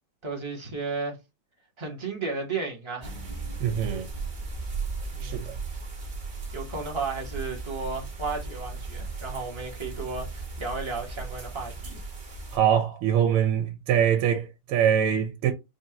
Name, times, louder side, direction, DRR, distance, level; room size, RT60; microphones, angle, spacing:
voice 1, 0.2-1.2 1.8-3.2 5.1-5.6 6.5-12.0, right 4 dB, 20° right, 0.8 m, -34 dB
sound 1, 3.0-12.6, right 3 dB, 55° right, 0.5 m, -36 dB
voice 2, 3.6-4.1 5.2-5.5 12.5-15.5, right 9 dB, 85° right, 1.5 m, -23 dB
4.9 x 2.6 x 2.8 m
omnidirectional pair, 2.4 m